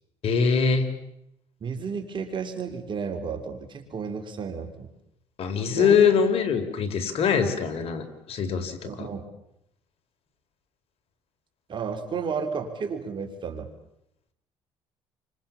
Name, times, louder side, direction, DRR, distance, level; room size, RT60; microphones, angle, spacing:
voice 1, 0.2-0.9 5.4-9.1, left 6 dB, 60° left, 7 dB, 4.4 m, -23 dB
voice 2, 1.6-4.9 5.8-6.0 8.8-9.3 11.7-13.7, right 5 dB, 45° right, 5 dB, 4.0 m, -32 dB
29.5 x 25.5 x 7.4 m, 0.82 s
cardioid pair, 90°, 11 cm